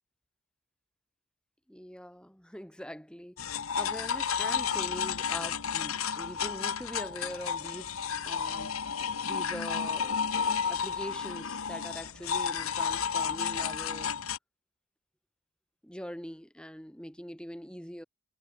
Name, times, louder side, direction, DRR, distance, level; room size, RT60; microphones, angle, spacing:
voice 1, 1.7-8.0 8.2-8.8 9.3-10.2 10.6-14.2 15.8-18.0, equal, 5° left, 2.3 m, -43 dB
sound 1, 3.4-14.4, left 6 dB, 80° left, 1.3 m, -32 dB
head